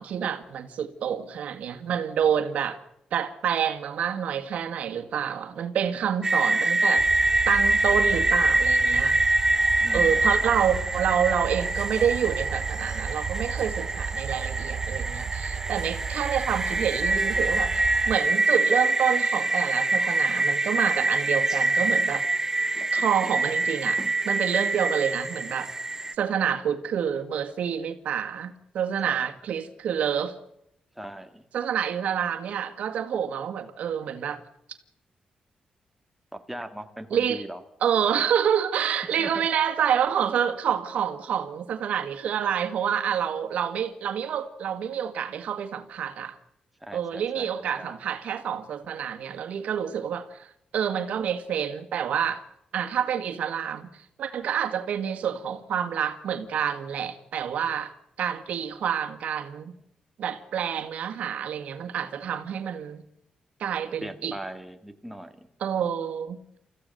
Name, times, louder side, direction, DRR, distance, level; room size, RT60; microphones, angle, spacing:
voice 1, 0.0-2.8 3.1-7.1 7.5-9.2 9.9-22.3 22.9-25.7 26.2-30.3 31.5-34.4 37.1-37.4 37.8-46.4 46.9-50.5 50.7-52.4 52.7-57.9 58.2-59.7 60.2-63.0 63.6-64.4 65.6-66.4, right 8 dB, 85° right, 1.8 m, -28 dB
sound 1, 6.2-26.1, right 2 dB, 20° right, 0.9 m, -25 dB
sound 2, 7.0-18.2, right 7 dB, 65° right, 0.8 m, -34 dB
voice 2, 9.8-10.6 29.0-29.3 31.0-31.5 36.3-37.6 39.0-39.5 46.8-47.5 47.8-48.0 64.0-65.5, right 1 dB, 5° right, 2.0 m, -40 dB
29.5 x 15.0 x 6.8 m
cardioid pair, 95°, 2 cm